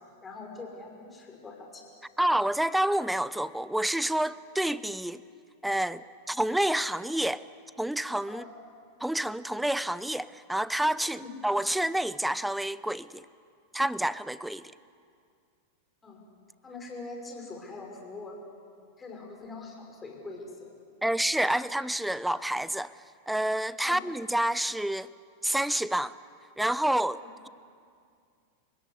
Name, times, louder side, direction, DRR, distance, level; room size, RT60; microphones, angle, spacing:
voice 1, 0.2-1.8 8.3-8.5 11.2-11.3 16.0-16.2 16.6-18.4 19.0-20.7 23.8-24.0 27.2-27.3, left 3 dB, 15° left, 5.8 m, -43 dB
voice 2, 2.2-5.2 5.6-7.4 7.8-8.4 9.0-13.2 13.7-14.6 21.0-22.9 23.3-25.1 25.4-26.1 26.6-27.5, right 1 dB, 5° right, 0.6 m, -28 dB
30.0 x 17.0 x 9.8 m
figure-of-eight pair, 90°, 0 cm